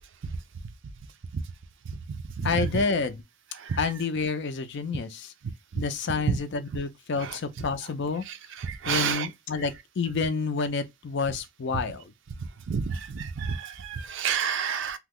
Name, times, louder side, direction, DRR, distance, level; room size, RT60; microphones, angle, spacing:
voice 1, 2.4-3.2 3.8-5.3 5.8-8.2 8.9-12.0, left 4 dB, 55° left, 0.4 m, -29 dB
voice 2, 8.3-9.3 12.7-15.0, right 7 dB, 60° right, 0.4 m, -30 dB
2.8 x 2.0 x 3.5 m
head